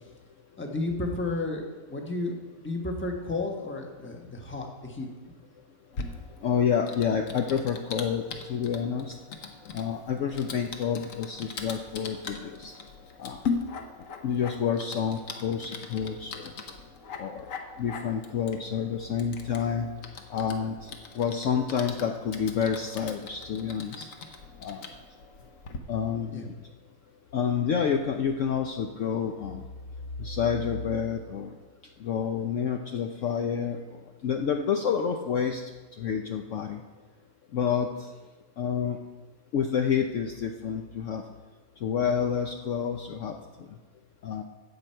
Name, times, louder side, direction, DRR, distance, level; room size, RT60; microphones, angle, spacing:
voice 1, 0.6-2.4 2.6-5.1 26.3-26.5, left 2 dB, 10° left, 2 dB, 0.8 m, -32 dB
Typing, 5.9-25.8, left 4 dB, 55° left, 1.1 m, -40 dB
voice 2, 6.4-8.2 8.5-9.1 9.7-12.7 13.2-13.4 14.2-16.5 17.2-17.5 17.8-19.9 20.3-24.1 24.6-24.8 25.9-26.5 27.3-29.6 30.2-31.6 32.0-35.6 36.0-36.8 37.5-37.9 38.6-39.0 39.5-41.2 41.8-43.7 44.2-44.4, left 7 dB, 80° left, 4 dB, 0.6 m, -29 dB
14.0 x 8.0 x 4.5 m, 1.3 s
omnidirectional pair, 2.0 m